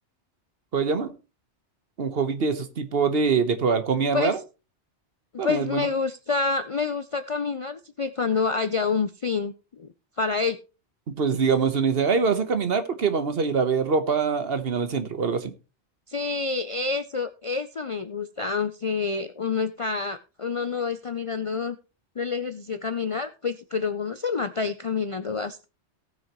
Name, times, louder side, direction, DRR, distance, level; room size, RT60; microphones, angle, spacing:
voice 1, 0.7-1.1 2.0-4.4 5.4-5.9 11.2-15.5, right 5 dB, 60° right, 1.2 m, -24 dB
voice 2, 5.3-9.5 9.8-9.9 10.2-10.6 16.1-21.8 22.2-25.7, left 4 dB, 45° left, 0.4 m, -28 dB
18.0 x 6.4 x 3.0 m
omnidirectional pair, 1.2 m